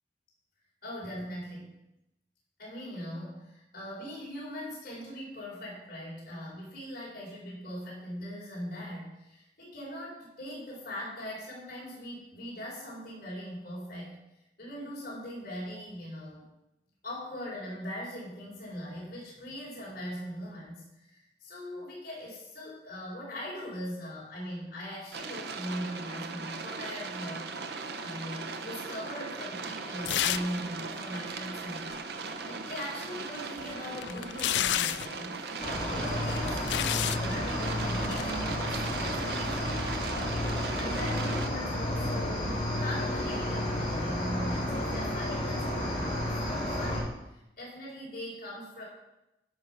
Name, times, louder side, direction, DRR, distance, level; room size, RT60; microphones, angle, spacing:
voice 1, 0.8-1.7 2.6-14.2 14.6-16.4 17.0-27.5 28.0-32.1 32.4-35.3 35.9-39.9 40.3-48.8, equal, 55° left, -6 dB, 4.4 m, -40 dB
sound 1, 25.1-41.5, right 4 dB, 65° right, 0.8 m, -38 dB
sound 2, 30.1-30.6 30.9-31.0 33.3-35.2 36.1-37.2 38.0-38.3, left 12 dB, 85° left, 0.3 m, -30 dB
Cricket, 35.6-47.0, left 1 dB, 40° left, 4.1 m, -31 dB
11.5 x 5.4 x 5.7 m, 0.90 s
head